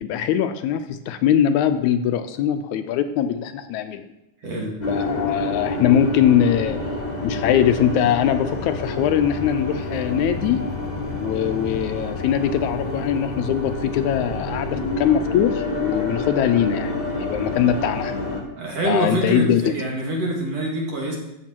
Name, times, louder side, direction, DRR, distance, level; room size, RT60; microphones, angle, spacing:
voice 1, 0.0-4.1 4.9-6.8 7.2-10.6 11.2-18.1 18.8-19.7, left 9 dB, 80° left, 9 dB, 1.9 m, -21 dB
voice 2, 4.4-4.7 18.6-21.2, right 1 dB, 55° right, -2 dB, 3.0 m, -25 dB
sound 1, 4.8-18.4, left 2 dB, 30° left, 0.8 m, -28 dB
13.5 x 7.2 x 4.5 m, 0.88 s
omnidirectional pair, 3.5 m